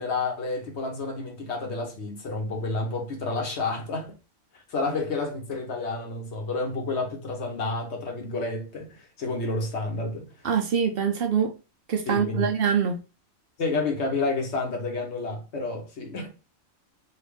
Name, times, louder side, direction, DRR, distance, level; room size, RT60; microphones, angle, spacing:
voice 1, 0.0-4.2 4.7-10.3 12.1-12.5 13.6-16.3, left 3 dB, 60° left, 1.1 m, -30 dB
voice 2, 10.4-11.5 11.9-13.0, right 7 dB, 60° right, 0.6 m, -24 dB
3.2 x 2.5 x 3.4 m
omnidirectional pair, 1.4 m